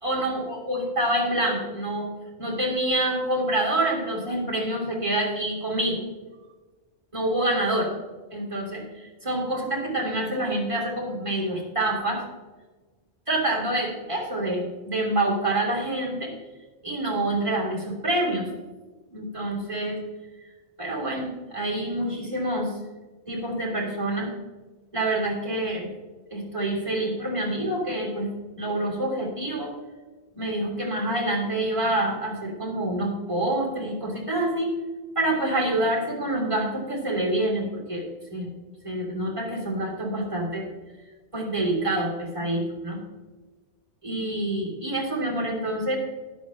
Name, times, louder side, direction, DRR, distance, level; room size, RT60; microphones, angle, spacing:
voice 1, 0.0-2.1 2.4-6.0 7.1-7.9 8.3-12.2 13.3-16.3 16.8-18.5 19.1-20.0 20.8-22.7 23.3-24.3 24.9-25.9 26.3-28.3 28.6-29.7 30.3-34.8 35.1-38.1 38.3-38.5 38.8-40.7 41.3-43.0 44.0-45.9, right 1 dB, 25° right, -2 dB, 2.9 m, -27 dB
13.5 x 11.0 x 3.1 m, 1.3 s
omnidirectional pair, 1.2 m